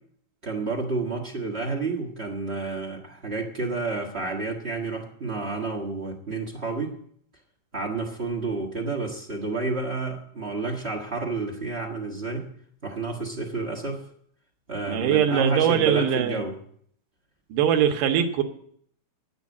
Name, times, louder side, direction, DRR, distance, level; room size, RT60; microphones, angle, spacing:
voice 1, 0.4-6.9 7.7-12.5 12.8-14.0 14.7-16.6, right 3 dB, 55° right, 1 dB, 0.7 m, -30 dB
voice 2, 14.9-16.4 17.5-18.4, right 9 dB, 85° right, 6 dB, 2.6 m, -22 dB
9.5 x 9.0 x 7.1 m, 0.64 s
omnidirectional pair, 3.7 m